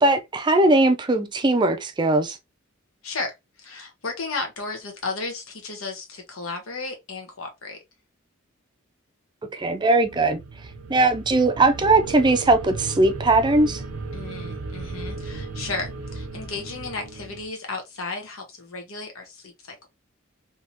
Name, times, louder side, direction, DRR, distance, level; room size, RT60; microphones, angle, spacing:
voice 1, 0.0-2.4 9.5-10.4 10.9-13.8, right 2 dB, 20° right, 0.5 m, -19 dB
voice 2, 3.0-7.8 14.1-19.9, left 3 dB, 85° left, 1.2 m, -34 dB
sound 1, 10.0-17.5, right 3 dB, 80° right, 0.7 m, -35 dB
3.5 x 2.9 x 2.8 m
head